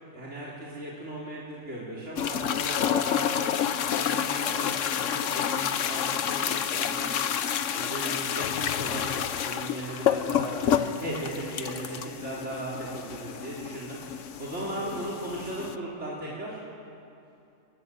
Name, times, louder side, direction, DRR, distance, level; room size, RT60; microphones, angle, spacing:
voice 1, 0.1-7.2 7.7-16.6, right 1 dB, 50° right, -6 dB, 4.0 m, -37 dB
sound 1, 2.2-15.8, left 9 dB, 65° left, 1.2 m, -29 dB
29.0 x 23.0 x 7.7 m, 2.7 s
omnidirectional pair, 1.5 m